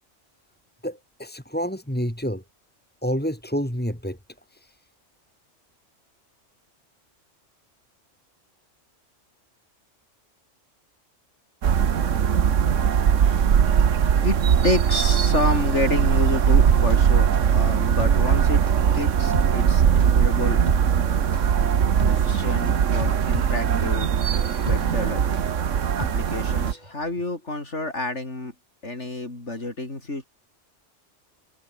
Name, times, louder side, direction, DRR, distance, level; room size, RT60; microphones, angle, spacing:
voice 1, 0.8-2.4 3.0-4.2 4.5-4.8, equal, 5° left, 4.8 m, -28 dB
sound 1, 11.6-26.7, right 8 dB, 80° right, 1.4 m, -20 dB
voice 2, 14.0-14.4 14.6-18.6 18.9-20.6 22.1-24.1 24.6-25.2 26.1-28.5 28.8-30.2, left 2 dB, 65° left, 5.0 m, -29 dB
sound 2, 17.3-26.9 27.2-27.3, right 1 dB, 35° right, 6.8 m, -34 dB
omnidirectional pair, 1.3 m